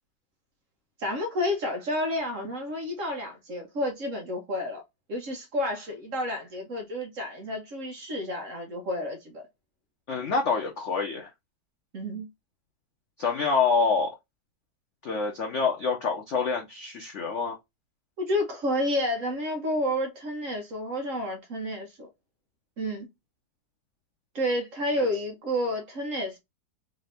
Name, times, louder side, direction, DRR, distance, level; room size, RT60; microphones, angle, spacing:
voice 1, 1.0-4.8 5.1-9.4 11.9-12.3 18.2-22.1 22.8-23.1 24.3-26.4, left 1 dB, 50° right, 1.0 m, -30 dB
voice 2, 10.1-11.3 13.2-14.1 15.0-17.6 25.0-25.1, left 5 dB, 85° left, 0.6 m, -26 dB
3.8 x 2.7 x 3.2 m
omnidirectional pair, 2.2 m